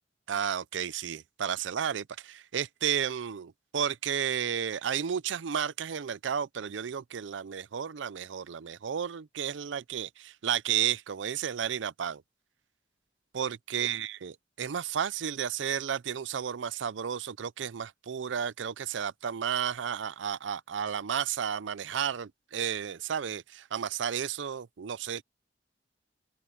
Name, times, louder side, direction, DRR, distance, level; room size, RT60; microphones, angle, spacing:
voice 1, 0.3-12.2 13.3-25.2, right 8 dB, 85° right, 0.5 m, -32 dB
head